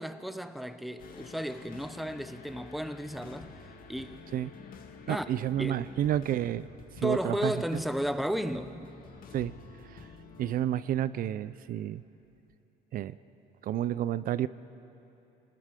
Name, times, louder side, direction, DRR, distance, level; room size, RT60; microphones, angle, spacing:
voice 1, 0.0-3.5 3.9-4.2 5.1-5.3 5.6-5.9 7.0-8.8, equal, ahead, 0.9 m, -33 dB
sound 1, 1.0-10.7, left 5 dB, 55° left, 2.0 m, -49 dB
voice 2, 5.1-6.6 6.9-7.8 9.3-9.5 9.8-10.1 10.4-12.0 12.9-13.2 13.6-14.5, right 11 dB, 60° right, 0.5 m, -30 dB
26.5 x 19.5 x 5.2 m
cardioid pair, 110°, 17 cm